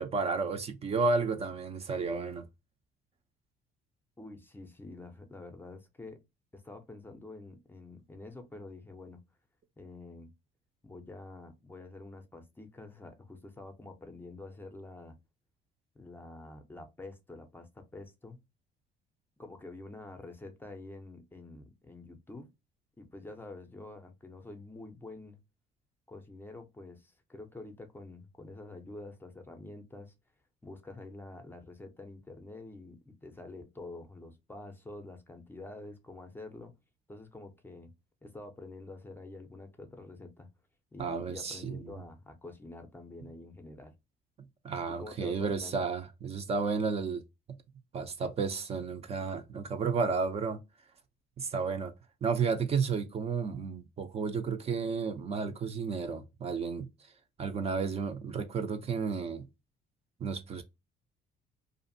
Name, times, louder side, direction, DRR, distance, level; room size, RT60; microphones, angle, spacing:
voice 1, 0.0-2.5 41.0-41.9 44.6-47.2 47.5-47.6 47.9-50.6 51.4-51.9 52.2-56.9 57.4-59.5 60.2-60.6, right 5 dB, 35° right, 0.5 m, -32 dB
voice 2, 4.2-6.2 6.5-9.2 9.8-10.3 10.8-15.2 16.0-18.4 19.4-22.5 23.0-25.4 26.1-30.1 30.6-36.8 37.1-37.9 38.2-40.5 40.9-43.9 44.9-45.9, left 2 dB, 10° left, 0.5 m, -47 dB
2.6 x 2.4 x 2.6 m
cardioid pair, 110°, 17 cm